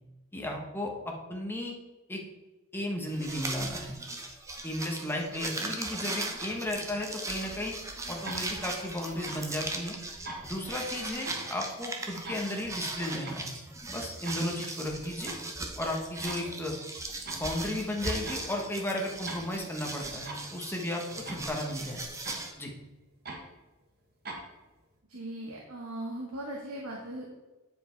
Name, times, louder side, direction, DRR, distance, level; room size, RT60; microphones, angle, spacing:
voice 1, 0.3-1.7 2.1-2.2 2.7-3.9 4.6-7.7 8.1-10.0 10.4-13.5 13.9-15.3 15.8-16.8 17.3-22.0 22.6-22.7, left 1 dB, 10° left, 0 dB, 1.2 m, -34 dB
sound 1, 3.1-22.5, right 2 dB, 15° right, 0.8 m, -38 dB
sound 2, 8.2-8.4 9.2-9.5 10.2-10.4 11.2-11.4 12.2-12.4 13.2-13.4 14.2-14.4 15.2-15.4 16.2-16.4 17.2-17.4 18.2-18.4 19.2-19.4 20.2-20.5 21.2-21.5 22.2-22.4 23.2-23.4 24.2-24.5, right 2 dB, 45° right, 1.6 m, -40 dB
voice 2, 25.1-27.3, right 1 dB, 75° right, -1 dB, 1.2 m, -38 dB
9.4 x 5.0 x 4.5 m, 1.1 s
head